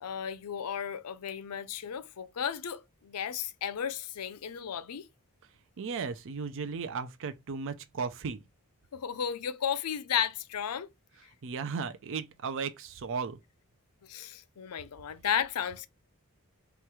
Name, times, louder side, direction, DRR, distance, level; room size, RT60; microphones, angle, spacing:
voice 1, 0.0-5.1 8.9-10.9 14.0-15.9, left 8 dB, 85° left, 0.5 m, -34 dB
voice 2, 5.8-8.4 11.4-13.4, right 5 dB, 60° right, 0.5 m, -35 dB
3.4 x 3.1 x 4.7 m
head